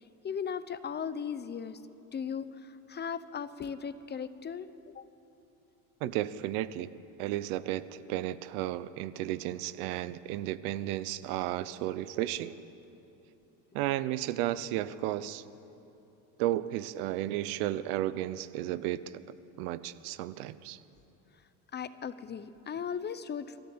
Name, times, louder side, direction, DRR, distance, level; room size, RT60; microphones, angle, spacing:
voice 1, 0.2-1.8 2.1-5.1 21.7-23.6, left 7 dB, 25° left, 13 dB, 0.7 m, -37 dB
voice 2, 6.0-6.9 7.2-12.6 13.7-15.4 16.4-19.2 19.6-20.8, right 14 dB, 85° right, 16 dB, 0.9 m, -33 dB
28.0 x 13.5 x 8.8 m, 2.9 s
supercardioid pair, 125°, 43 cm